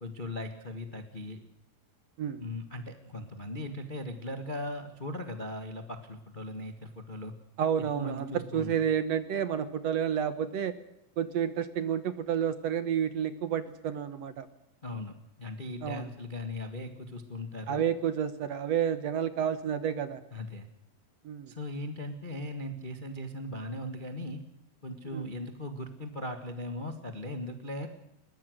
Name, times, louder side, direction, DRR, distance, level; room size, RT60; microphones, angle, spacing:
voice 1, 0.0-1.4 2.4-7.3 7.9-8.7 14.8-17.8 20.3-20.7 21.5-24.4 24.8-27.9, left 1 dB, 40° left, 6 dB, 0.6 m, -38 dB
voice 2, 7.6-10.7 11.2-14.5 15.8-16.0 17.7-20.2 21.2-21.5 25.1-25.3, right 8 dB, 65° right, 12 dB, 1.8 m, -30 dB
22.5 x 19.5 x 6.4 m, 0.87 s
omnidirectional pair, 4.0 m